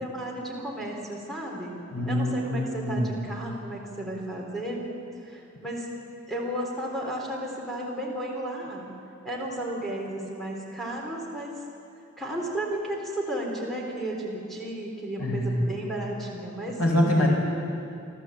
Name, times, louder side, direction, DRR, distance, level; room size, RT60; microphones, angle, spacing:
voice 1, 0.0-1.7 2.1-4.8 5.2-5.9 6.3-8.9 9.2-11.5 12.2-16.8, right 1 dB, ahead, -2 dB, 3.9 m, -33 dB
voice 2, 1.9-3.1 15.2-15.6 16.8-17.3, left 1 dB, 80° left, -1 dB, 4.7 m, -24 dB
29.5 x 12.0 x 8.3 m, 2.7 s
head